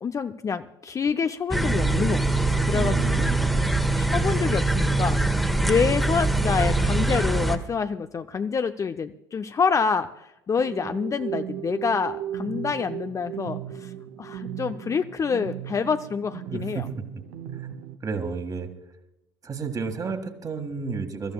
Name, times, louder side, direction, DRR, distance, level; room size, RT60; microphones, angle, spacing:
voice 1, 0.0-3.3 4.0-5.2 5.6-13.9 14.2-16.9, left 6 dB, 25° left, 9 dB, 0.5 m, -27 dB
sound 1, 1.5-7.6, right 2 dB, ahead, 1.3 m, -23 dB
voice 2, 2.7-3.6 16.5-16.8 18.0-18.7 19.4-21.3, right 5 dB, 30° right, 7 dB, 1.8 m, -31 dB
sound 2, 10.6-18.0, right 11 dB, 60° right, 0.8 m, -36 dB
24.5 x 14.0 x 2.3 m, 0.90 s
figure-of-eight pair, 65°, 12 cm